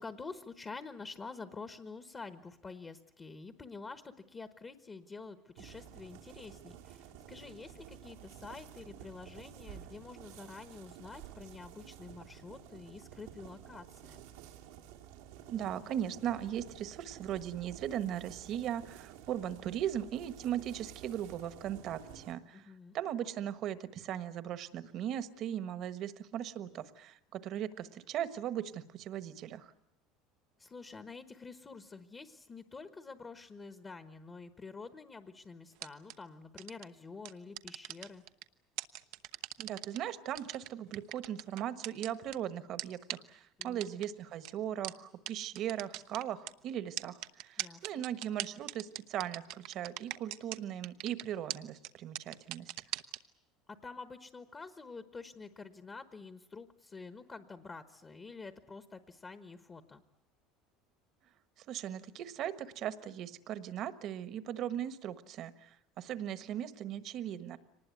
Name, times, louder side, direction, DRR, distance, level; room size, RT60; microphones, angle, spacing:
voice 1, 0.0-14.2 22.5-22.9 30.6-38.2 43.6-44.0 47.6-48.0 53.7-60.0, left 4 dB, 20° left, 11 dB, 1.1 m, -48 dB
sound 1, 5.6-22.3, right 10 dB, 90° right, 2.6 m, -52 dB
voice 2, 15.5-29.7 39.6-52.7 61.7-67.6, right 10 dB, 45° right, 13 dB, 1.4 m, -38 dB
sound 2, 35.8-36.1 36.6-36.8 37.2-38.4 38.8-40.0 40.4-42.4 42.8-42.9 43.1-43.2 43.6-44.1 44.4-44.5 44.8-44.9 45.3-45.4 45.6-46.5 47.0-50.6 50.8-51.2 51.5-51.6 51.8-51.9 52.2-53.2, right 16 dB, 70° right, 0.9 m, -39 dB
24.5 x 19.5 x 9.4 m, 0.82 s
cardioid pair, 145°, 0 cm